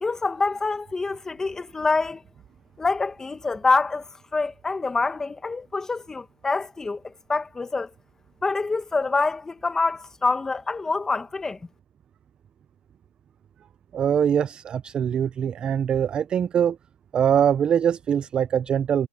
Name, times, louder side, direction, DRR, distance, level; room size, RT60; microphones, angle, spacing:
voice 1, 0.0-2.2 2.8-4.1 4.3-7.9 8.4-11.6, left 3 dB, 5° left, 1.4 m, -26 dB
voice 2, 13.9-16.8 17.1-19.1, right 8 dB, 10° right, 0.3 m, -22 dB
hypercardioid pair, 155°, 8 cm